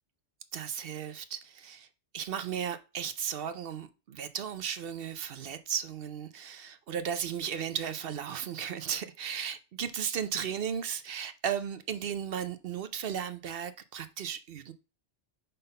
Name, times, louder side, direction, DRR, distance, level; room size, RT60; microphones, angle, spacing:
voice 1, 0.5-1.9 2.1-14.7, right 8 dB, 60° right, 0.8 m, -35 dB
5.4 x 3.9 x 5.3 m
omnidirectional pair, 1.2 m